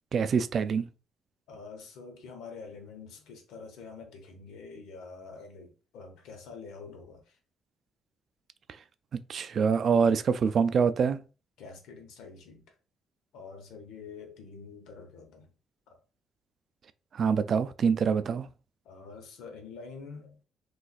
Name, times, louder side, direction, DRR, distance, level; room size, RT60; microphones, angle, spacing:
voice 1, 0.1-0.9 9.3-11.2 17.1-18.5, right 6 dB, 55° right, 0.3 m, -25 dB
voice 2, 1.5-7.4 11.6-12.7 13.3-15.5 15.9-16.0 18.8-20.4, left 4 dB, 90° left, 0.9 m, -46 dB
2.5 x 2.4 x 4.0 m
cardioid pair, 90°, 0 cm